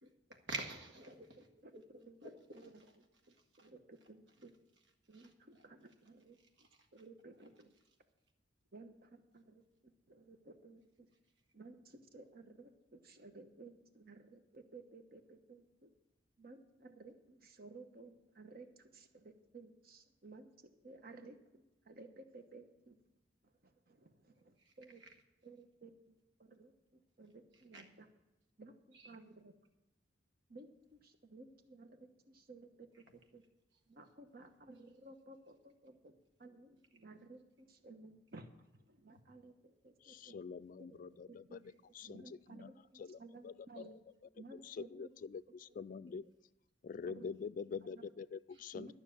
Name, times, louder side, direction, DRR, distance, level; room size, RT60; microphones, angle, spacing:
voice 1, 0.0-1.4 1.7-2.7 3.3-3.7 5.1-5.6 6.6-6.9 24.6-24.7 25.0-25.1 27.7-27.8 28.9-29.1 48.5-48.8, right 2 dB, 90° right, 3 dB, 1.8 m, -49 dB
voice 2, 3.3-4.5 5.1-6.4 6.9-7.7 8.7-11.1 11.5-15.9 16.4-20.5 20.8-23.0 23.6-25.0 25.4-28.1 28.6-29.5 30.5-32.9 33.3-33.4 33.9-41.6 42.0-44.0 44.4-45.1 46.1-46.3 47.0-47.3 47.9-48.0 48.7-48.9, right 3 dB, 55° right, 7 dB, 1.1 m, -56 dB
voice 3, 40.0-41.6 41.9-42.7 43.0-43.2 43.4-44.0 44.6-46.2 46.8-48.9, left 5 dB, 45° left, 16 dB, 0.3 m, -45 dB
12.5 x 6.3 x 8.6 m, 0.99 s
head